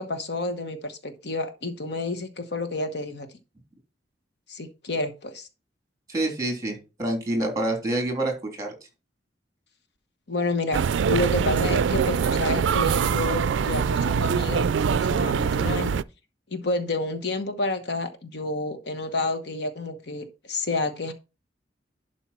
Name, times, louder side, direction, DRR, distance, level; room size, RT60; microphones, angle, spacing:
voice 1, 0.0-3.3 4.5-5.5 10.3-10.8 11.1-16.0 16.5-21.1, left 2 dB, 65° left, 1.1 m, -29 dB
voice 2, 6.1-8.7, right 1 dB, 20° right, 3.2 m, -27 dB
sound 1, 10.7-16.0, right 6 dB, 80° right, 0.4 m, -23 dB
11.5 x 4.9 x 4.3 m
head